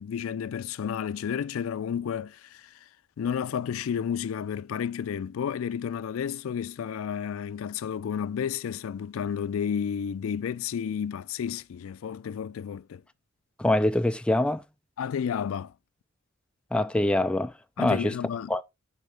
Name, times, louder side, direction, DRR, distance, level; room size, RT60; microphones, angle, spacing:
voice 1, 0.0-2.7 3.2-13.0 15.0-15.7 17.8-18.6, left 8 dB, 85° left, 0.3 m, -31 dB
voice 2, 13.6-14.6 16.7-17.5 17.8-18.1 18.5-18.6, left 1 dB, 5° left, 0.3 m, -24 dB
6.5 x 5.0 x 3.3 m
head